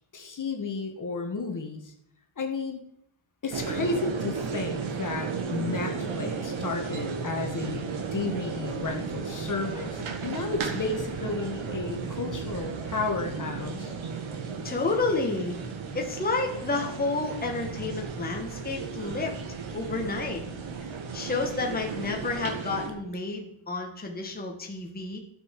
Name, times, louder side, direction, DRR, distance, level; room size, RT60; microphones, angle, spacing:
voice 1, 0.1-1.9 2.4-2.8 3.4-9.9 10.2-13.9, left 3 dB, 40° left, 3 dB, 1.6 m, -32 dB
sound 1, 3.5-22.9, right 5 dB, 75° right, 1.9 m, -34 dB
voice 2, 14.6-15.6 15.9-19.3 19.7-20.4 21.1-25.2, left 3 dB, 20° left, 1 dB, 1.5 m, -30 dB
12.5 x 6.7 x 5.3 m, 0.72 s
wide cardioid pair, 145°, 48 cm